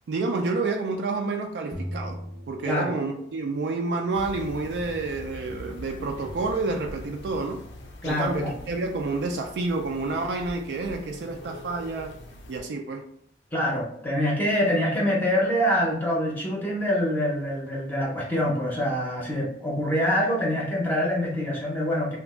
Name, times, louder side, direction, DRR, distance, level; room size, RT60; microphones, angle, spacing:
voice 1, 0.1-2.2 2.5-7.6 8.0-12.1 12.5-13.0, right 3 dB, 70° right, 0.3 m, -29 dB
sound 1, 1.7-3.5, equal, 85° right, 0.8 m, -37 dB
voice 2, 2.6-2.9 8.0-8.5 13.5-22.2, equal, 10° left, 0.6 m, -25 dB
sound 2, 4.1-12.6, left 1 dB, 80° left, 0.5 m, -43 dB
2.9 x 2.3 x 3.5 m
head